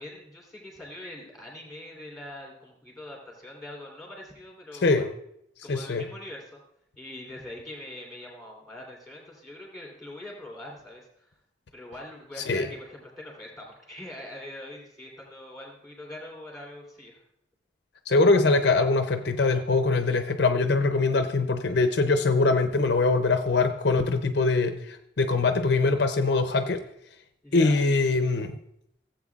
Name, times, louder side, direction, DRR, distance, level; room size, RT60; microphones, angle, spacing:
voice 1, 0.0-5.1 5.6-6.6 7.0-11.3 11.7-17.2 27.4-27.8, left 1 dB, ahead, -2 dB, 3.1 m, -43 dB
voice 2, 5.7-6.1 12.5-12.7 18.1-26.8 27.5-28.5, left 3 dB, 60° left, 8 dB, 0.5 m, -23 dB
16.0 x 7.8 x 2.4 m, 0.75 s
head